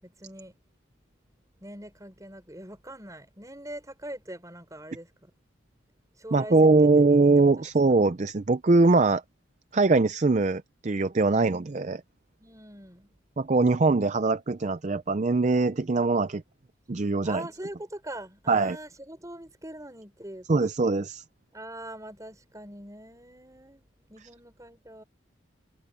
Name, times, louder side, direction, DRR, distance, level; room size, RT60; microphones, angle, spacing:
voice 1, 0.0-0.6 1.6-5.3 6.2-7.3 11.3-11.6 12.4-13.1 17.2-20.5 21.5-25.0, right 1 dB, 15° right, 5.6 m, -43 dB
voice 2, 6.3-9.2 9.7-12.0 13.4-16.4 16.9-17.4 18.5-18.8 20.5-21.2, right 3 dB, 35° right, 0.5 m, -22 dB
head